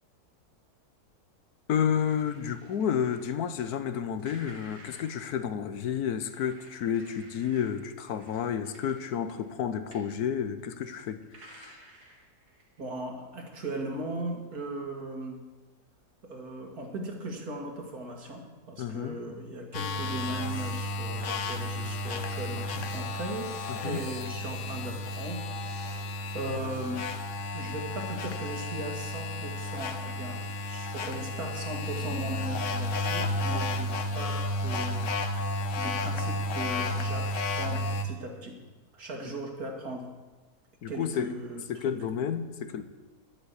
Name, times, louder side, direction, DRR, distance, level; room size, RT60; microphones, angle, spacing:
voice 1, 1.7-11.8 18.8-19.2 23.7-24.0 40.8-41.3 41.7-42.8, left 8 dB, 75° left, 1.3 m, -31 dB
sound 1, 2.1-3.3 4.2-5.3 6.2-9.5 9.9-10.2 10.6-12.8, right 2 dB, 85° right, 2.8 m, -54 dB
voice 2, 12.8-15.4 16.2-23.5 23.8-25.5 25.8-27.0 27.5-33.9 34.1-35.1 35.4-38.6 38.9-40.1 40.9-41.9, right 1 dB, 70° right, 2.6 m, -38 dB
sound 2, 19.7-38.0, left 1 dB, 55° left, 1.1 m, -32 dB
11.5 x 9.0 x 8.2 m
omnidirectional pair, 1.7 m